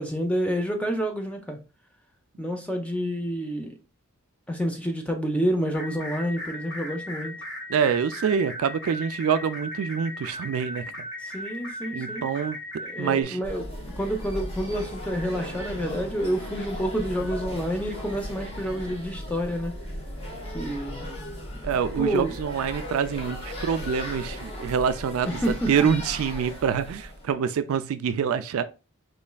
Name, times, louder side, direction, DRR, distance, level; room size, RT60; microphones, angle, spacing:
voice 1, 0.0-1.6 2.4-3.7 4.5-7.4 11.2-12.2 12.8-13.7 14.0-19.8 20.5-21.1 22.0-22.3 25.2-25.9, equal, 5° left, 0.5 m, -28 dB
sound 1, 5.7-13.2, left 1 dB, 50° left, 1.3 m, -37 dB
voice 2, 7.7-11.1 11.9-12.6 13.0-13.4 21.6-28.6, right 7 dB, 70° right, 0.3 m, -26 dB
sound 2, 13.4-27.3, equal, 25° left, 1.0 m, -36 dB
4.2 x 3.1 x 2.2 m
head